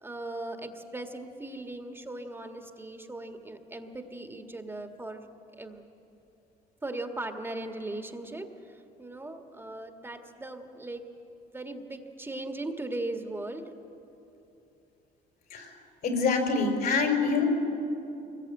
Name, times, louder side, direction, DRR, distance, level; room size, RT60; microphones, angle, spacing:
voice 1, 0.0-5.3 5.6-5.8 6.8-8.5 9.0-11.1 11.5-13.7, right 2 dB, 15° right, 5 dB, 1.7 m, -38 dB
voice 2, 16.0-17.4, left 4 dB, 65° left, 3 dB, 4.6 m, -26 dB
23.5 x 20.5 x 8.9 m, 2.9 s
cardioid pair, 110°, 17 cm